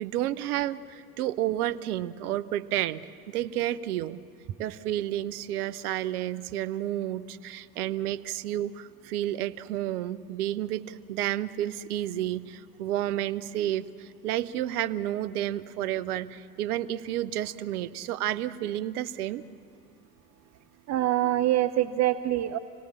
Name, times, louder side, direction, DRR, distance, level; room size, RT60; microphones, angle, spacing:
voice 1, 0.0-4.2 4.6-19.4, right 13 dB, 70° right, 15 dB, 0.9 m, -31 dB
voice 2, 20.9-22.6, right 13 dB, 35° right, 12 dB, 0.7 m, -25 dB
27.5 x 18.0 x 7.5 m, 2.8 s
hypercardioid pair, 85°, 46 cm